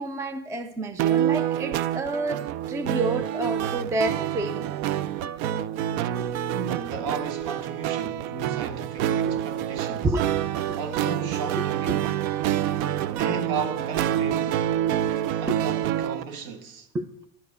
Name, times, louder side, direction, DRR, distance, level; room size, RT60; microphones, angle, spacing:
voice 1, 0.0-4.7 10.0-10.3 10.7-10.8 14.8-15.6 16.9-17.1, right 2 dB, 5° right, 0.4 m, -30 dB
sound 1, 1.0-16.2, right 11 dB, 70° right, 0.8 m, -27 dB
voice 2, 6.5-10.1 10.8-12.1 13.2-14.6 15.4-16.9, right 5 dB, 55° right, 1.8 m, -34 dB
11.5 x 9.4 x 6.8 m
supercardioid pair, 135°, 42 cm